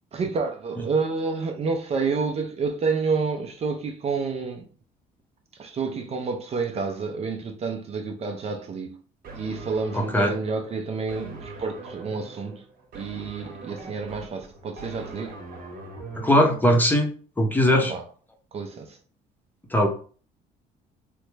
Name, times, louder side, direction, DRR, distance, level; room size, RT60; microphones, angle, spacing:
voice 1, 0.1-4.7 5.5-9.0 9.3-12.6 12.9-15.4 17.7-18.0 18.5-19.0, right 4 dB, 40° right, 0.5 m, -29 dB
sound 1, 9.2-16.6, right 3 dB, 55° right, 0.9 m, -41 dB
voice 2, 9.9-10.3 16.1-17.1 17.4-17.9 19.7-19.9, equal, 10° left, 0.6 m, -20 dB
3.2 x 2.1 x 3.2 m
cardioid pair, 110°, 17 cm